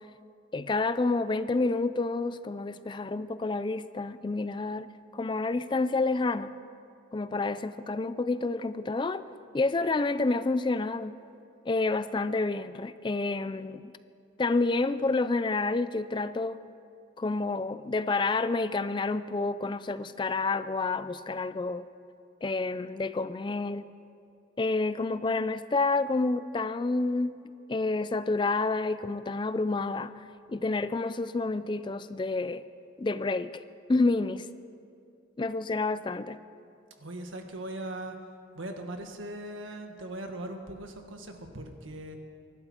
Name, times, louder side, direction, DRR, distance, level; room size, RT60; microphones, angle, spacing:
voice 1, 0.5-4.9 5.1-6.5 7.1-9.2 9.5-11.1 11.7-13.9 14.4-16.6 17.2-21.9 22.4-23.8 24.6-27.4 27.7-30.2 30.5-32.6 33.0-33.6 33.9-34.5 35.4-36.4, left 3 dB, 25° left, 14 dB, 0.3 m, -29 dB
voice 2, 37.0-38.1 38.5-42.2, right 1 dB, 80° right, 4 dB, 1.6 m, -39 dB
24.0 x 12.0 x 4.4 m, 2.5 s
head